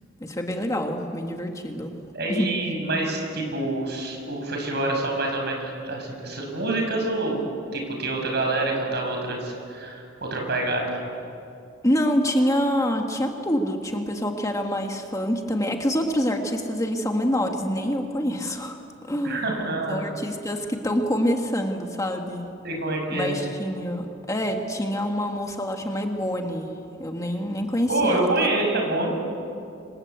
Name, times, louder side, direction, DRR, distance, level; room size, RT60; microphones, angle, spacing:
voice 1, 0.2-2.0 2.3-2.5 11.8-18.8 19.0-19.5 19.9-22.5 23.1-26.7 27.0-28.3, equal, 15° left, 3 dB, 1.8 m, -26 dB
voice 2, 2.1-7.4 7.7-11.0 19.2-20.0 22.6-23.4 27.9-29.1, right 2 dB, 55° right, 2 dB, 6.7 m, -26 dB
27.5 x 26.0 x 8.2 m, 2.6 s
head